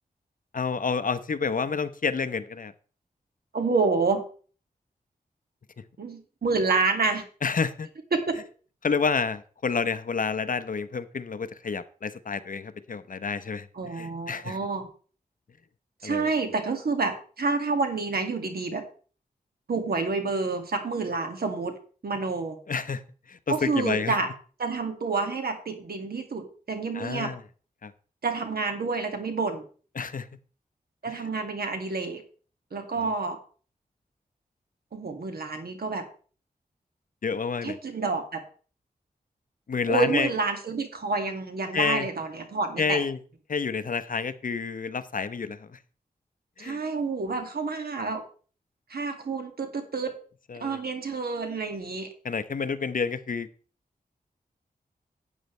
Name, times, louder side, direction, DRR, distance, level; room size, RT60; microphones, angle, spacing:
voice 1, 0.5-2.7 7.4-7.9 8.8-14.6 16.0-16.3 22.7-23.0 23.3-24.2 26.9-27.4 27.8-27.9 29.9-30.3 31.1-31.2 33.0-33.1 37.2-37.8 39.7-40.3 41.7-42.1 42.8-43.2 43.5-45.8 46.6-46.8 50.5-50.8 52.2-53.5, left 5 dB, 60° left, 13 dB, 0.8 m, -29 dB
voice 2, 3.5-4.2 6.0-7.2 8.1-8.4 13.8-14.9 16.0-18.8 19.7-21.8 22.0-22.6 23.5-24.3 24.6-27.3 28.2-29.6 31.0-32.2 32.7-33.4 34.9-36.1 37.6-38.4 39.9-43.0 46.6-48.2 48.9-50.1 50.6-52.1, right 4 dB, 75° right, 5 dB, 2.1 m, -28 dB
12.5 x 9.2 x 3.2 m, 0.40 s
wide cardioid pair, 80°, 16 cm